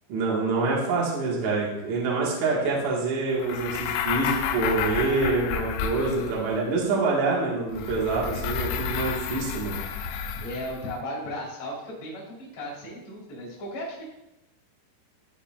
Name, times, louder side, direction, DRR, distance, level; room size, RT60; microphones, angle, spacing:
voice 1, 0.1-9.8, right 3 dB, 60° right, -4 dB, 2.2 m, -26 dB
sound 1, 3.4-6.6 7.7-10.9, left 8 dB, 90° left, 3.3 m, -31 dB
voice 2, 10.4-14.0, left 1 dB, 45° left, -6 dB, 2.4 m, -36 dB
13.5 x 5.0 x 2.5 m, 0.91 s
omnidirectional pair, 6.0 m